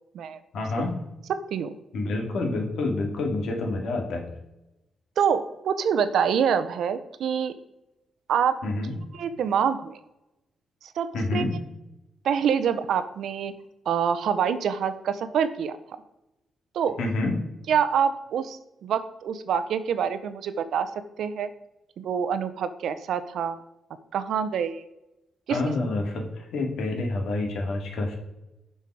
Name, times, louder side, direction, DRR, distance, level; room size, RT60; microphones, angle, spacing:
voice 1, 0.5-1.0 1.9-4.3 8.6-9.0 11.1-11.6 17.0-17.4 25.5-28.2, left 2 dB, 70° left, 2 dB, 2.2 m, -28 dB
voice 2, 5.2-7.5 8.3-8.6 9.1-10.0 11.0-11.4 12.2-13.5 13.9-15.7 16.7-16.9 17.7-20.9 21.2-21.5 22.0-23.6 24.1-24.8 25.5-25.6, right 7 dB, 70° right, 12 dB, 0.7 m, -26 dB
10.5 x 5.7 x 4.7 m, 0.93 s
wide cardioid pair, 170°, 0 cm